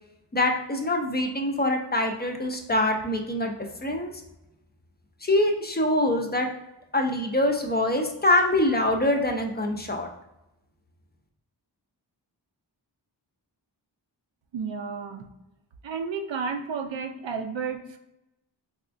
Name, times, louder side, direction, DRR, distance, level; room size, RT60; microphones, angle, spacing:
voice 1, 0.3-3.5 3.8-4.1 5.2-6.5 6.9-10.1, left 1 dB, 25° left, 3 dB, 0.5 m, -24 dB
voice 2, 14.5-15.3 15.8-18.0, right 5 dB, 80° right, 5 dB, 0.5 m, -32 dB
4.1 x 2.3 x 2.5 m, 0.90 s
wide cardioid pair, 55°, 45 cm